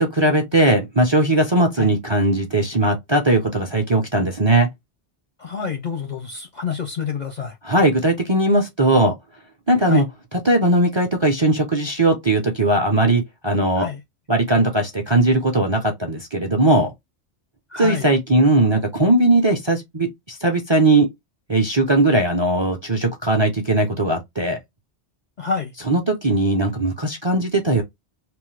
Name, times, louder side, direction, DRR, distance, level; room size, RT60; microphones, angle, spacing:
voice 1, 0.0-4.7 7.6-9.1 9.7-10.1 10.3-13.9 14.3-16.9 17.8-21.1 21.5-24.6 25.9-27.8, right 2 dB, 35° right, 0.5 m, -19 dB
voice 2, 5.4-7.5 9.9-10.1 13.8-14.0 17.7-18.1 25.4-25.7, left 6 dB, 55° left, 0.5 m, -28 dB
3.0 x 2.0 x 3.1 m
omnidirectional pair, 1.2 m